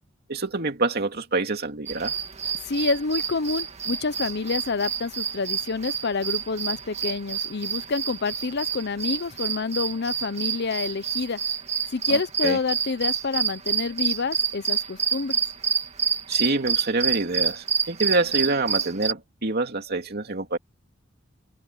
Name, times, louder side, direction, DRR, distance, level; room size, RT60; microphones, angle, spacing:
voice 1, 0.3-2.1 12.1-12.6 16.3-20.6, right 3 dB, 55° right, 2.6 m, -26 dB
sound 1, 1.9-19.1, right 7 dB, 35° right, 1.9 m, -28 dB
voice 2, 2.6-11.4 11.9-15.4, left 4 dB, 55° left, 0.7 m, -28 dB
open air
head